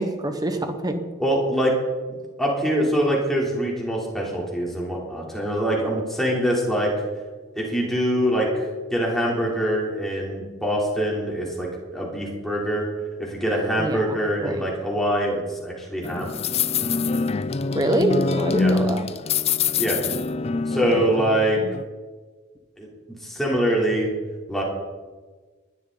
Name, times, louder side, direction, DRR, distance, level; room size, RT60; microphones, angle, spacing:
voice 1, 0.0-1.0 13.8-14.6 17.7-19.0, right 1 dB, 20° right, 7 dB, 1.2 m, -25 dB
voice 2, 1.2-1.7 2.1-6.9 7.6-12.9 13.2-16.3 18.6-18.7 19.8-20.0 20.7-21.6 22.8-22.9 23.2-24.1 24.5-24.6, equal, ahead, -4 dB, 3.5 m, -24 dB
sound 1, 16.0-21.8, left 4 dB, 30° left, 0.4 m, -25 dB
20.0 x 12.0 x 4.0 m, 1.3 s
head